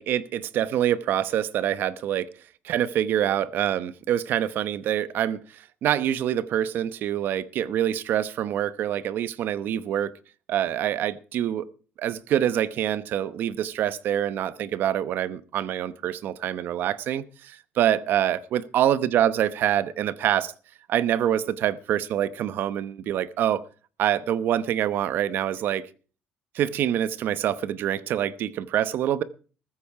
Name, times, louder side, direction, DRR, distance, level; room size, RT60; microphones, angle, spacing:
voice 1, 0.0-2.3 2.6-5.4 5.8-10.1 10.5-11.7 12.0-20.5 20.9-23.6 24.0-25.9 26.5-29.2, right 11 dB, 55° right, 0.9 m, -25 dB
14.5 x 13.5 x 4.7 m
cardioid pair, 165°, 4 cm